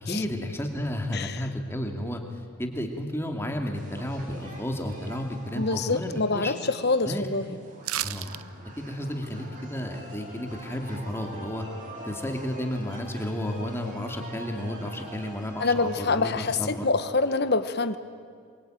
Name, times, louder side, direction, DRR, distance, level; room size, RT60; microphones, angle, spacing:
voice 1, 0.0-6.6 7.0-7.3 8.0-8.4 8.8-11.7 12.0-16.9, equal, 10° left, 3 dB, 2.4 m, -32 dB
sound 1, 3.7-16.5, right 1 dB, 35° right, 4.6 m, -45 dB
voice 2, 5.6-6.6 6.8-7.4 15.6-18.0, left 3 dB, 45° left, 11 dB, 1.2 m, -25 dB
sound 2, 7.8-8.4 8.8-8.9, right 13 dB, 75° right, 0.6 m, -31 dB
27.5 x 23.0 x 9.2 m, 2.2 s
head